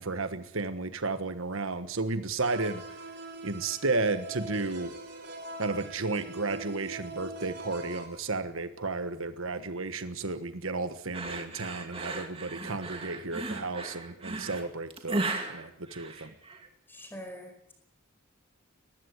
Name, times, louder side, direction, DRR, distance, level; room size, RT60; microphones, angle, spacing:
voice 1, 0.0-3.0 3.4-4.9 5.6-16.3, right 3 dB, 70° right, 10 dB, 1.4 m, -33 dB
sound 1, 2.4-8.1, right 2 dB, 50° right, 3.7 m, -43 dB
sound 2, 11.1-16.7, right 2 dB, 25° right, 2.5 m, -36 dB
voice 2, 16.9-17.7, equal, 10° left, 5 dB, 4.8 m, -44 dB
20.5 x 15.0 x 9.6 m, 0.76 s
head